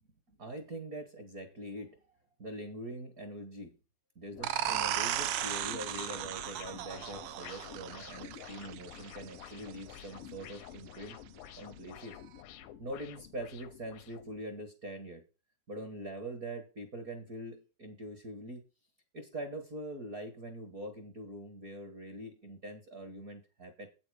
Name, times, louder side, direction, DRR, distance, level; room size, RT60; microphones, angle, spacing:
voice 1, 0.3-2.0 2.4-3.7 4.1-11.2 11.6-12.2 12.5-15.2 15.7-18.6 19.1-23.9, right 1 dB, 45° right, 6 dB, 1.1 m, -43 dB
sound 1, 4.3-14.4, left 11 dB, 85° left, 2.5 m, -50 dB
sound 2, 4.4-9.8, right 12 dB, 85° right, 1.5 m, -36 dB
8.6 x 8.0 x 4.9 m, 0.32 s
omnidirectional pair, 3.8 m